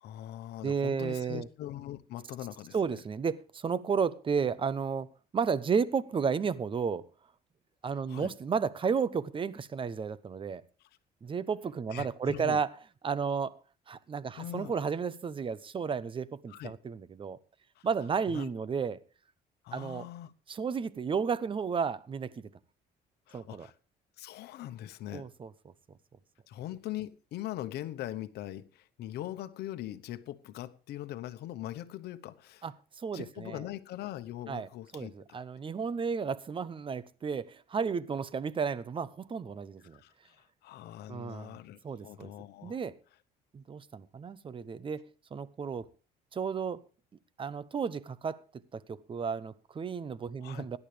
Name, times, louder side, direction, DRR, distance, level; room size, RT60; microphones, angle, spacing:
voice 1, 0.0-3.0 7.9-8.3 11.9-12.6 14.4-14.7 16.5-16.7 17.8-17.9 18.3-18.5 19.6-20.3 23.3-23.7 24.2-25.3 26.5-32.6 33.1-35.4 39.9-42.8 50.4-50.7, left 13 dB, 75° left, 1.1 m, -41 dB
voice 2, 0.6-1.5 2.7-7.0 7.8-10.6 11.2-12.7 13.0-13.6 13.9-17.4 17.8-19.0 19.7-20.1 20.5-22.5 23.3-23.7 25.1-25.5 32.6-33.6 34.5-34.7 34.9-40.0 41.1-41.6 41.8-42.3 42.6-43.0 43.5-45.9 46.3-46.8 47.4-48.4 48.7-50.8, right 6 dB, 30° right, 0.9 m, -33 dB
17.0 x 11.0 x 3.4 m
cardioid pair, 110°, 17 cm